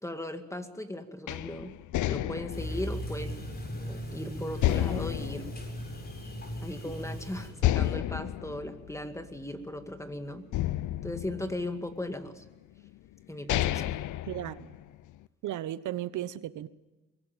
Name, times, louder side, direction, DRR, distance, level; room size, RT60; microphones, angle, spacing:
voice 1, 0.0-1.7 2.1-3.4 3.7-5.5 6.6-10.4 11.0-12.4 13.3-13.9, left 1 dB, 10° left, 2.0 m, -37 dB
sound 1, 1.3-4.1 4.6-6.5 6.9-7.0 7.6-10.0 10.5-12.1 12.8-12.9 13.3-15.1, left 14 dB, 75° left, 0.8 m, -31 dB
sound 2, 2.5-7.5, equal, 30° left, 7.3 m, -38 dB
voice 2, 14.3-14.8 15.4-16.7, right 13 dB, 80° right, 1.1 m, -35 dB
23.0 x 17.0 x 9.1 m
cardioid pair, 90°, 30 cm